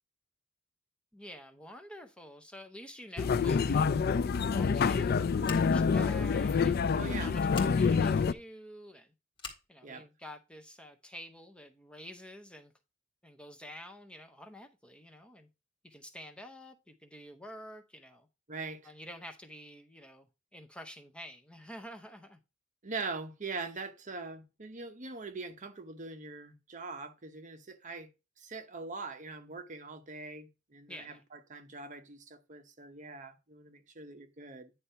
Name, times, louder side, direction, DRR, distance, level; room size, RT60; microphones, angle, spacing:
voice 1, 1.1-9.1 9.7-12.7 13.2-15.5 15.8-18.3 18.8-22.4 30.9-31.2, equal, 5° left, 0.7 m, -49 dB
sound 1, 3.2-8.3, left 5 dB, 50° left, 0.4 m, -27 dB
Scissors, 5.4-5.9 7.5-7.7 9.4-9.7, left 4 dB, 25° left, 1.9 m, -43 dB
voice 2, 6.9-7.4 9.8-10.1 18.5-18.9 22.8-28.1 28.4-34.7, right 4 dB, 40° right, 0.9 m, -42 dB
9.6 x 3.3 x 5.6 m
head